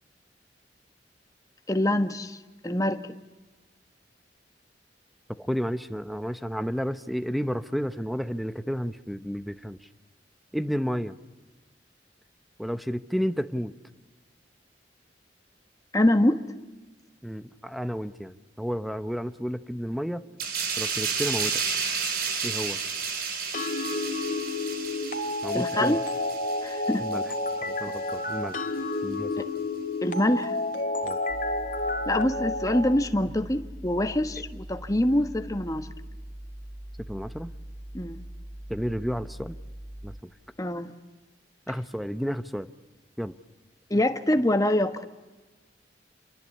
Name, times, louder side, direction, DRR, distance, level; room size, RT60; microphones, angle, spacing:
voice 1, 1.7-2.4 2.6-3.0 15.9-16.4 25.5-26.0 26.6-27.0 30.0-30.5 32.1-35.9 37.9-38.2 40.6-40.9 43.9-45.1, left 1 dB, 20° left, 1.3 m, -25 dB
voice 2, 5.4-9.8 10.5-11.2 12.6-13.7 17.2-20.2 20.8-21.6 22.4-22.8 25.4-26.0 27.0-27.2 27.7-28.7 29.0-29.3 31.0-31.2 37.1-37.5 38.7-39.6 40.0-40.2 41.7-42.7 43.2-43.3, equal, ahead, 0.8 m, -31 dB
sound 1, 20.4-27.6 27.9-28.1, right 6 dB, 55° right, 3.3 m, -32 dB
sound 2, 23.5-32.9, left 2 dB, 50° left, 2.4 m, -30 dB
sound 3, 31.3-40.2, right 1 dB, 70° right, 3.1 m, -42 dB
28.0 x 23.0 x 8.4 m
head